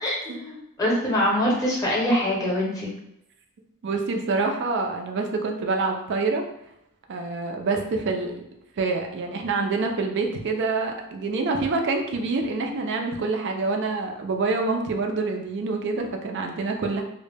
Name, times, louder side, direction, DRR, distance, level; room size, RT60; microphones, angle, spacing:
voice 1, 0.0-2.9, left 1 dB, 15° left, -4 dB, 0.7 m, -24 dB
voice 2, 3.8-6.4 7.1-8.4 8.8-17.0, right 3 dB, 55° right, 3 dB, 0.4 m, -26 dB
2.1 x 2.0 x 3.3 m, 0.83 s
head